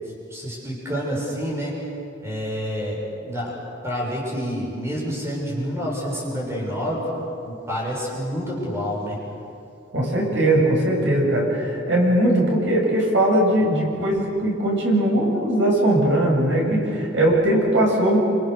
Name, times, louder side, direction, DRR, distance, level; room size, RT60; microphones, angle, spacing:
voice 1, 0.3-1.7 2.2-3.5 3.8-7.1 7.4-9.2, equal, 15° right, -3 dB, 7.2 m, -28 dB
voice 2, 9.9-18.2, right 1 dB, 75° right, -2 dB, 7.5 m, -20 dB
27.5 x 26.5 x 6.8 m, 2.7 s
head